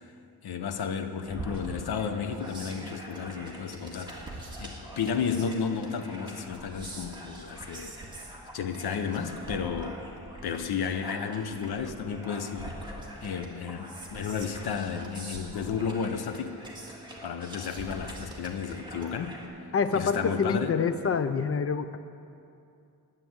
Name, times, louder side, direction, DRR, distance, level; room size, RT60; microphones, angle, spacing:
voice 1, 0.4-4.1 4.6-7.9 8.5-10.0 10.4-12.7 13.2-16.6 17.2-19.3 19.9-20.8, left 6 dB, 85° left, 7 dB, 0.9 m, -32 dB
sound 1, 1.3-19.5, right 1 dB, 10° right, 1.9 m, -43 dB
voice 2, 19.7-22.0, left 5 dB, 40° left, 11 dB, 0.5 m, -26 dB
10.5 x 7.7 x 9.4 m, 2.6 s
wide cardioid pair, 140°, 37 cm